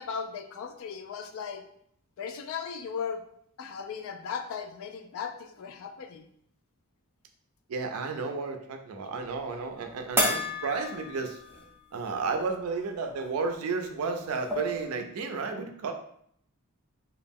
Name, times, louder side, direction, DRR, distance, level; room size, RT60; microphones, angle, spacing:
voice 1, 0.0-1.6 2.2-3.2 3.6-6.3, left 6 dB, 65° left, 6 dB, 0.3 m, -37 dB
voice 2, 7.7-11.4 11.9-15.9, right 4 dB, 80° right, 5 dB, 0.4 m, -32 dB
sound 1, 10.2-11.8 12.2-12.3 13.8-13.9 14.2-14.9, equal, 10° right, 0.5 m, -31 dB
2.3 x 2.0 x 3.4 m, 0.68 s
head